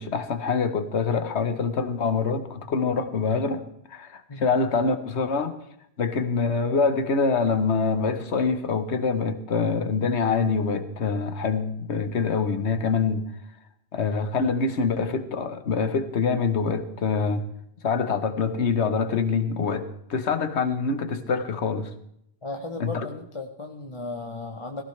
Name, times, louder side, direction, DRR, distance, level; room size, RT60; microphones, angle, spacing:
voice 1, 0.0-3.6 3.9-5.5 6.0-13.2 13.9-17.5 17.8-21.9 22.8-23.1, left 5 dB, 85° left, 10 dB, 1.4 m, -25 dB
voice 2, 22.4-24.8, left 2 dB, 30° left, 3 dB, 0.9 m, -35 dB
18.0 x 15.5 x 3.3 m, 0.75 s
omnidirectional pair, 1.1 m